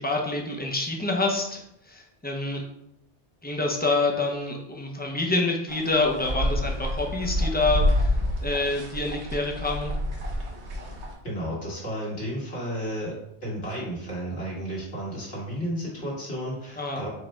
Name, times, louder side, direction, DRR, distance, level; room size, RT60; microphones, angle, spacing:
voice 1, 0.0-1.6 1.9-2.6 3.4-8.1 8.4-9.9 16.8-17.1, left 2 dB, 15° left, 0 dB, 0.4 m, -27 dB
sound 1, 5.7-11.1, left 1 dB, 80° right, 1.3 m, -28 dB
voice 2, 11.2-17.1, equal, 80° left, -6 dB, 2.0 m, -32 dB
4.8 x 2.2 x 4.3 m, 0.79 s
omnidirectional pair, 1.1 m